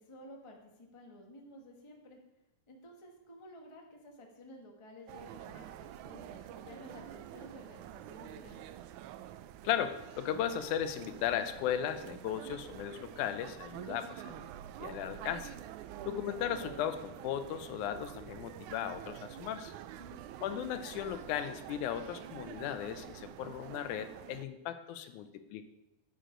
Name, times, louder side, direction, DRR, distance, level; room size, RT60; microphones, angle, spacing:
voice 1, 0.0-2.2 2.7-8.7 15.9-16.1 19.9-20.3, left 1 dB, 45° left, 0 dB, 0.4 m, -53 dB
sound 1, 5.1-24.5, right 11 dB, 80° right, 1.9 m, -47 dB
voice 2, 9.6-14.4 14.8-15.5 16.1-19.7 20.4-25.6, left 10 dB, 85° left, 10 dB, 2.1 m, -36 dB
8.9 x 8.1 x 5.1 m, 0.92 s
omnidirectional pair, 3.4 m